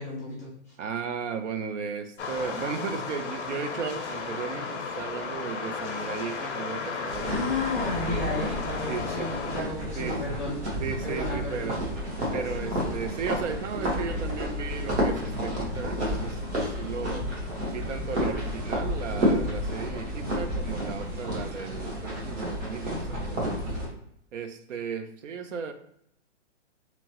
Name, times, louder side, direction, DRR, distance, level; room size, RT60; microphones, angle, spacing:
voice 1, 0.0-0.7 7.3-10.6 11.0-11.8 12.4-12.7, left 3 dB, 15° left, -10 dB, 0.5 m, -33 dB
voice 2, 0.8-7.4 7.8-8.3 8.9-9.3 10.0-10.2 10.8-11.8 12.3-17.3 17.7-23.7 24.3-25.7, right 6 dB, 80° right, 8 dB, 0.5 m, -35 dB
sound 1, 2.2-9.6, left 5 dB, 70° left, 0.6 m, -34 dB
sound 2, 7.1-23.9, equal, 65° right, 1.2 m, -31 dB
sound 3, 13.7-20.4, left 6 dB, 45° right, 1.5 m, -39 dB
2.8 x 2.0 x 2.8 m, 0.69 s
hypercardioid pair, 180°, 36 cm